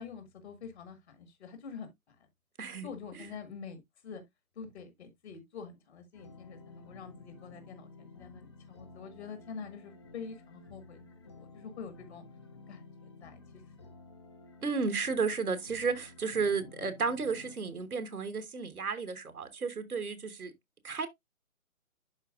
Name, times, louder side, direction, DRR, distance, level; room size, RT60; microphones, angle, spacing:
voice 1, 0.0-2.3 2.8-4.2 4.5-12.2 12.7-13.9, left 6 dB, 50° left, 1.6 m, -46 dB
voice 2, 2.6-2.9 14.6-20.5 20.8-21.1, right 5 dB, 85° right, 1.4 m, -33 dB
sound 1, 6.1-17.6, left 3 dB, 20° left, 0.5 m, -53 dB
11.5 x 4.1 x 2.4 m
figure-of-eight pair, 140°, 43 cm